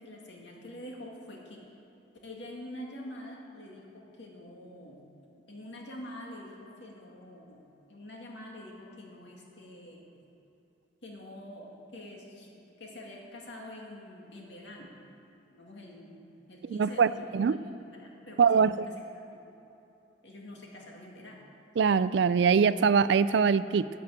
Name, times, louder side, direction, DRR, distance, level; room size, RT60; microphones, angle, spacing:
voice 1, 0.0-1.6 2.2-5.1 5.5-7.6 7.9-10.2 11.0-12.5 12.8-14.9 15.5-19.4 20.2-21.4, left 1 dB, 70° left, -1 dB, 2.1 m, -46 dB
voice 2, 16.6-17.6 18.4-18.9 21.8-23.9, right 6 dB, 65° right, 15 dB, 0.3 m, -23 dB
11.5 x 5.9 x 8.9 m, 3.0 s
head